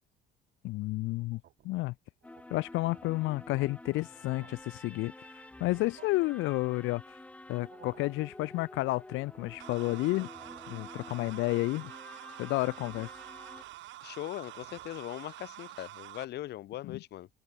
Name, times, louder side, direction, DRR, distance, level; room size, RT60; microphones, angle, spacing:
voice 1, 0.6-1.4 1.6-1.9 2.5-5.1 5.6-7.0 7.5-10.3 10.7-11.9 12.4-13.1 16.8-17.0, left 20 dB, 85° left, 1.1 m, -31 dB
sound 1, 1.2-1.8 2.2-2.4 2.8-3.0 3.7-3.8 4.1-4.8 5.5-6.1 7.5-8.2 9.2-9.8 10.2-10.9 11.3-11.9 12.5-13.0 13.3-14.0 14.4-15.0, right 12 dB, 55° right, 7.0 m, -59 dB
sound 2, 2.2-13.6, left 2 dB, 5° left, 1.3 m, -50 dB
sound 3, 9.6-16.3, right 16 dB, 75° right, 6.9 m, -47 dB
voice 2, 14.0-17.3, left 14 dB, 60° left, 1.4 m, -40 dB
open air
cardioid pair, 145°, 20 cm